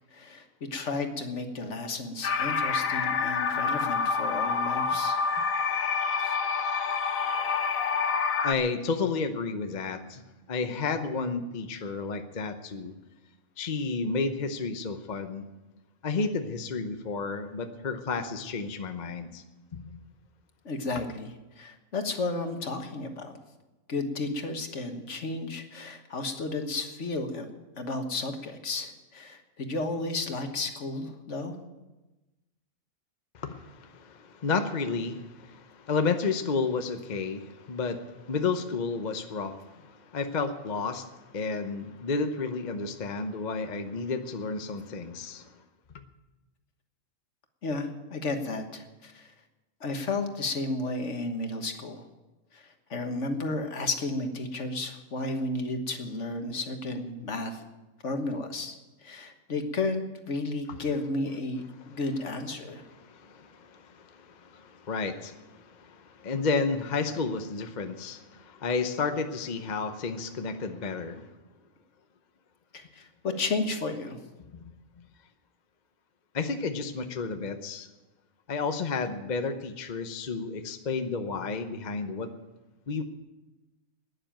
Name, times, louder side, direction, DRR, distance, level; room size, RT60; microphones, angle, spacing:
voice 1, 0.1-0.4 0.7-5.2 20.6-23.3 23.9-27.5 27.8-31.6 47.6-49.3 49.8-52.0 52.5-52.6 52.9-57.6 58.0-58.8 59.0-62.8 72.7-74.2, left 2 dB, 60° left, 6 dB, 1.7 m, -33 dB
sound 1, 2.2-8.5, left 5 dB, 80° left, 1.2 m, -27 dB
voice 2, 8.4-10.2 10.5-12.9 13.6-15.5 16.0-19.4 19.7-19.8 33.3-45.5 61.9-62.0 62.9-71.3 74.5-74.6 76.3-77.9 78.5-82.3 82.9-83.0, left 4 dB, 40° left, 7 dB, 0.9 m, -32 dB
12.0 x 10.0 x 8.9 m, 1.1 s
omnidirectional pair, 1.4 m